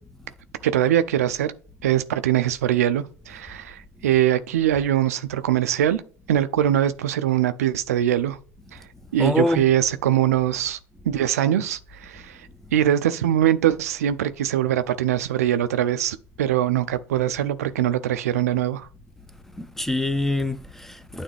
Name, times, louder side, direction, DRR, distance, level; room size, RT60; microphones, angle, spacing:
voice 1, 0.6-1.5 1.8-6.0 6.3-8.4 9.1-10.8 11.1-12.4 12.7-18.9, right 11 dB, 85° right, 0.5 m, -22 dB
voice 2, 9.2-9.6 19.5-21.2, left 1 dB, 5° left, 0.8 m, -25 dB
9.2 x 3.5 x 3.3 m
hypercardioid pair, 70°, 8 cm